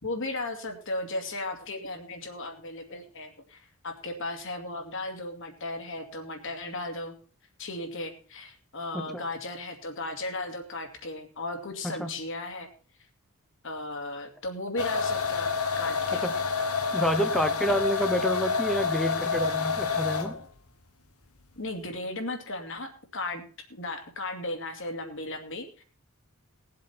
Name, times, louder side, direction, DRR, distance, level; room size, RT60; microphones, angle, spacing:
voice 1, 0.0-7.1 7.6-12.7 13.6-15.5 15.8-16.3 21.6-23.4 23.7-25.8, left 2 dB, 60° left, 4 dB, 2.5 m, -36 dB
sound 1, 14.8-20.4, left 5 dB, 80° left, 1.4 m, -28 dB
voice 2, 16.9-20.3, equal, ahead, 8 dB, 1.0 m, -28 dB
19.5 x 7.8 x 4.3 m, 0.39 s
head